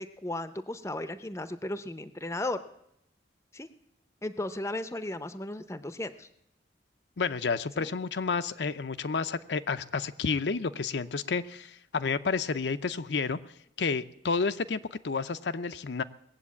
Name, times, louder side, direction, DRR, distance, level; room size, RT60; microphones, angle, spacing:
voice 1, 0.0-2.6 3.5-3.7 4.2-6.3 7.8-7.9, left 1 dB, 15° left, 11 dB, 0.6 m, -35 dB
voice 2, 7.2-13.4 13.8-16.0, left 5 dB, 75° left, 10 dB, 0.6 m, -30 dB
19.5 x 7.9 x 8.4 m, 0.78 s
head